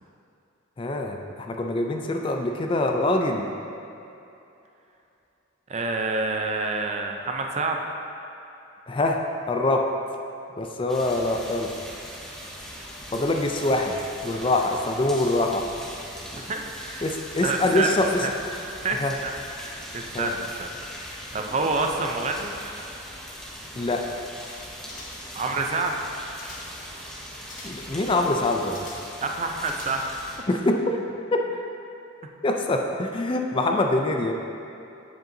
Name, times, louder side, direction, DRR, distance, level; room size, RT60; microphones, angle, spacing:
voice 1, 0.8-3.5 8.9-9.2 9.5-9.8 10.6-11.7 13.1-15.7 17.0-18.3 18.9-19.1 20.1-20.3 23.8-24.0 27.6-28.9 30.5-30.8 31.3-31.4 32.4-34.3, left 2 dB, 25° left, 3 dB, 0.4 m, -24 dB
voice 2, 5.7-7.8 16.3-17.1 17.4-17.9 18.8-19.3 19.6-22.5 25.3-26.0 29.2-30.1, right 3 dB, 35° right, 3 dB, 0.4 m, -28 dB
sound 1, 10.9-30.4, equal, 5° left, 0.8 m, -40 dB
sound 2, 24.9-25.4 26.0-26.8 27.5-27.9 28.7-29.2 29.6-30.3 30.6-30.7, left 2 dB, 40° left, 1.0 m, -45 dB
7.7 x 7.4 x 2.7 m, 2.8 s
head